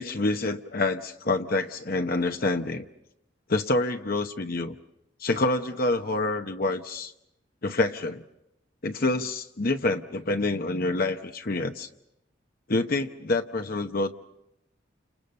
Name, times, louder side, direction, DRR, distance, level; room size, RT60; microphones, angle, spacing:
voice 1, 0.0-2.8 3.5-4.7 5.2-7.1 7.6-8.2 8.8-11.9 12.7-14.2, left 2 dB, 50° left, 6 dB, 0.9 m, -27 dB
30.0 x 27.5 x 5.5 m, 0.86 s
head